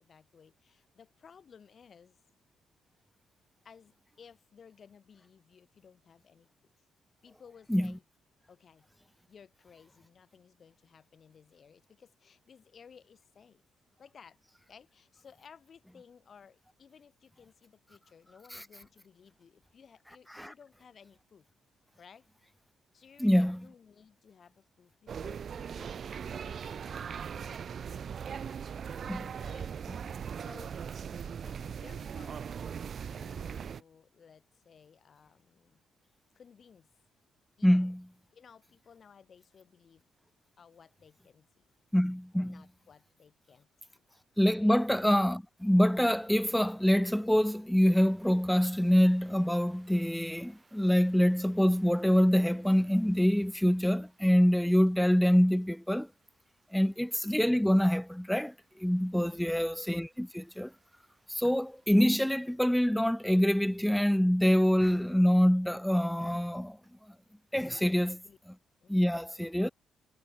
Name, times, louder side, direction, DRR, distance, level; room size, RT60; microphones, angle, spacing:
voice 1, 0.0-2.2 3.6-6.5 7.2-8.0 8.5-8.9 9.3-13.6 14.0-14.4 14.7-21.5 22.0-22.3 22.9-28.2 29.4-29.8 30.3-32.5 33.0-35.8 36.3-36.9 37.6-37.9 38.3-40.0 40.6-41.7 42.3-43.7 44.0-44.1 44.6-44.8 56.7-57.1 59.2-59.7 67.8-68.4 68.8-69.2, left 6 dB, 50° left, 2.2 m, -58 dB
voice 2, 23.2-23.7 29.1-29.3 37.6-38.1 41.9-42.6 44.4-56.1 56.7-60.7 61.3-66.8 67.5-68.2 68.9-69.7, equal, 5° left, 0.4 m, -25 dB
sound 1, 25.1-33.8, right 7 dB, 50° right, 1.2 m, -39 dB
sound 2, 48.0-62.6, right 3 dB, 25° right, 5.2 m, -68 dB
cardioid pair, 90°, 0 cm